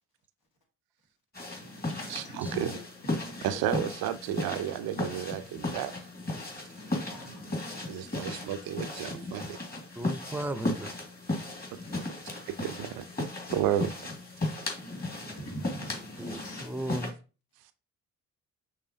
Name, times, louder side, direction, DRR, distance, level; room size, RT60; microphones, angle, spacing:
sound 1, 1.3-17.1, left 2 dB, 25° left, 1.8 m, -36 dB
voice 1, 1.6-2.4 3.3-3.5 6.8-7.8 11.8-12.0 14.8-16.6, right 1 dB, 70° left, 1.8 m, -45 dB
voice 2, 2.1-2.7 3.4-6.0 7.9-9.6 12.5-13.9, right 11 dB, 70° right, 0.5 m, -32 dB
voice 3, 10.0-11.0 16.2-17.1, right 1 dB, 5° right, 0.6 m, -36 dB
5.5 x 3.3 x 2.7 m
hypercardioid pair, 50°, 37 cm